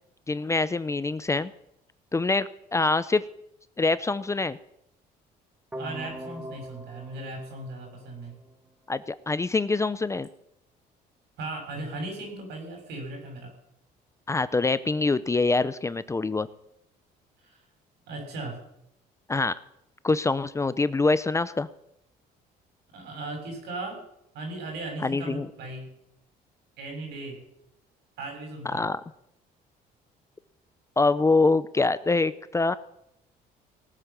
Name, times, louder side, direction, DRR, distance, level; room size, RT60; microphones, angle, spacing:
voice 1, 0.3-1.5 2.1-3.2 3.8-4.6 8.9-10.3 14.3-16.5 19.3-19.6 20.0-21.7 25.0-25.5 28.6-29.0 31.0-32.7, left 3 dB, 15° left, 16 dB, 0.6 m, -25 dB
sound 1, 5.7-8.7, equal, 10° right, 1.6 m, -42 dB
voice 2, 5.7-8.3 11.4-13.5 17.4-17.6 18.1-18.6 22.9-24.0 24.3-25.9 26.8-27.4 28.2-28.9, right 2 dB, 80° right, 2 dB, 6.7 m, -37 dB
18.5 x 8.7 x 7.0 m, 0.78 s
cardioid pair, 110°, 17 cm